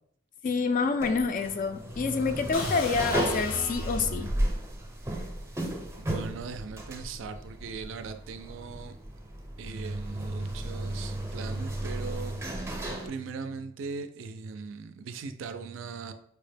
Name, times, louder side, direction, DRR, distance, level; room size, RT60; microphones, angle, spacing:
voice 1, 0.4-4.3, left 4 dB, 40° left, 8 dB, 0.3 m, -27 dB
sound 1, 1.0-13.1, right 1 dB, 15° right, 0.6 m, -35 dB
sound 2, 2.5-4.5, left 1 dB, 75° left, 0.8 m, -35 dB
voice 2, 5.9-9.0 9.6-12.8 13.1-16.1, right 5 dB, 70° right, 9 dB, 0.3 m, -39 dB
4.5 x 2.1 x 3.3 m, 0.68 s
head